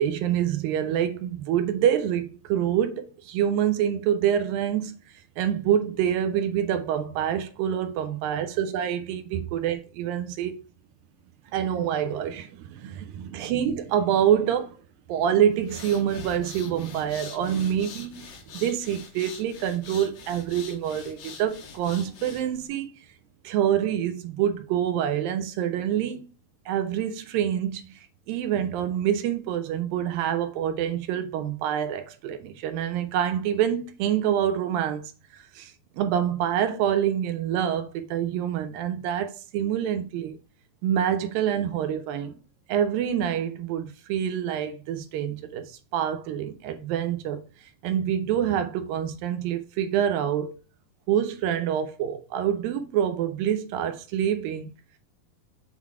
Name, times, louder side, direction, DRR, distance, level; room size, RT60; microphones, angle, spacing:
voice 1, 0.0-4.9 5.4-10.6 11.5-14.8 15.1-18.3 18.6-22.9 23.4-26.3 26.7-28.0 28.3-35.0 35.3-40.4 40.8-42.3 42.7-47.4 47.8-50.5 51.1-54.7, right 9 dB, 80° right, 2.4 m, -26 dB
sound 1, 15.5-22.7, left 5 dB, 60° left, 1.8 m, -44 dB
7.3 x 3.9 x 4.7 m
omnidirectional pair, 4.2 m